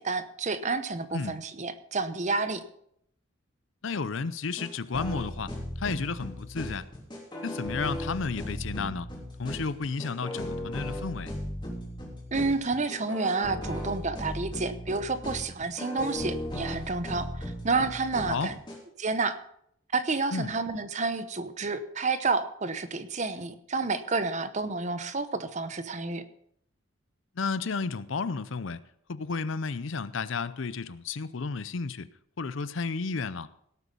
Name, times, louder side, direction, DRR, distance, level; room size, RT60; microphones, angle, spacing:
voice 1, 0.0-2.6 12.3-18.5 19.0-19.4 19.9-26.2, right 3 dB, 35° right, 11 dB, 0.8 m, -30 dB
voice 2, 3.8-5.5 5.8-6.9 7.4-9.1 9.4-11.3 18.3-18.5 20.3-20.5 27.4-28.8 29.1-32.1 32.4-33.5, left 4 dB, 70° left, 16 dB, 0.6 m, -32 dB
sound 1, 4.6-18.8, left 1 dB, 20° left, 3.5 m, -37 dB
17.5 x 8.3 x 5.3 m, 0.70 s
head